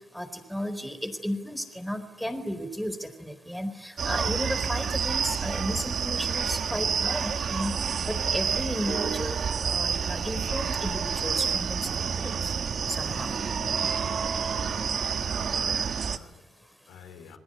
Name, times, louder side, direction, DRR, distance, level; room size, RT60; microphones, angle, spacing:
voice 1, 0.1-7.8 8.1-9.4 9.6-11.9 12.2-12.3 12.9-13.4, equal, ahead, 10 dB, 4.3 m, -34 dB
sound 1, 4.0-16.2, right 6 dB, 50° right, 1.5 m, -29 dB
voice 2, 14.5-15.0 15.5-17.4, left 7 dB, 85° left, 9 dB, 3.6 m, -48 dB
28.0 x 20.0 x 9.9 m, 1.1 s
cardioid pair, 90°, 0 cm